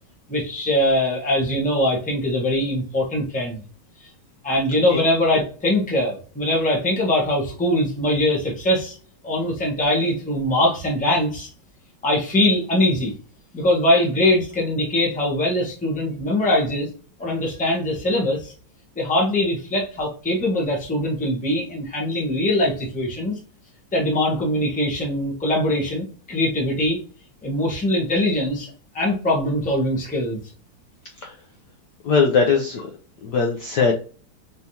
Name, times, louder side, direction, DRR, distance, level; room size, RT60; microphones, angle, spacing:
voice 1, 0.3-3.6 4.0-4.1 4.4-9.0 9.2-11.5 12.0-13.1 13.5-16.9 17.2-18.5 18.9-23.4 23.9-27.0 27.4-30.4, left 1 dB, 5° left, -2 dB, 0.9 m, -22 dB
voice 2, 32.0-32.9 33.2-33.9, left 5 dB, 75° left, 2 dB, 1.0 m, -20 dB
4.2 x 3.4 x 2.8 m, 0.39 s
omnidirectional pair, 2.4 m